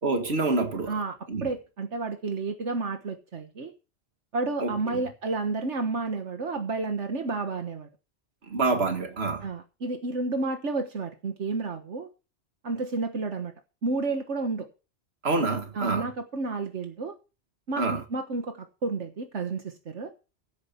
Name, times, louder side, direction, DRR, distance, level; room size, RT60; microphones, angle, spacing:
voice 1, 0.0-1.0 1.3-1.5 4.6-5.0 8.5-9.5 15.2-16.1 17.8-18.0, right 3 dB, 60° right, 2.1 m, -27 dB
voice 2, 0.9-3.7 4.3-7.9 9.4-12.1 12.6-13.5 13.8-14.7 15.7-17.2 17.7-20.1, right 3 dB, 80° right, 1.7 m, -31 dB
16.0 x 9.5 x 4.5 m
omnidirectional pair, 1.2 m